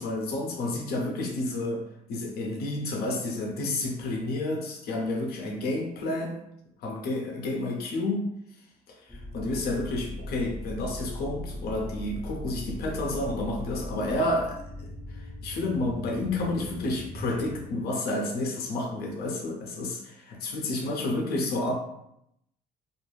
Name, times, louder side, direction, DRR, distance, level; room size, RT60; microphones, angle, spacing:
voice 1, 0.0-1.8 2.1-6.4 6.8-8.3 8.9-21.7, left 2 dB, 70° left, 1 dB, 0.7 m, -30 dB
sound 1, 9.1-17.6, left 1 dB, 5° left, 0.7 m, -39 dB
2.4 x 2.1 x 3.1 m, 0.76 s
cardioid pair, 110°, 17 cm